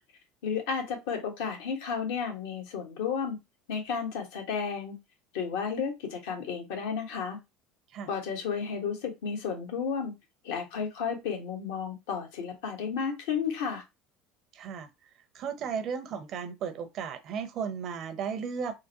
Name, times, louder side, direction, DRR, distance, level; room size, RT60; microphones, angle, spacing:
voice 1, 0.4-3.4 3.7-5.0 5.3-7.4 8.1-10.1 10.4-13.8, left 6 dB, 75° left, 1.2 m, -32 dB
voice 2, 14.5-14.9 15.3-18.7, right 6 dB, 55° right, 0.7 m, -35 dB
3.7 x 2.1 x 2.8 m
hypercardioid pair, 80°, 0 cm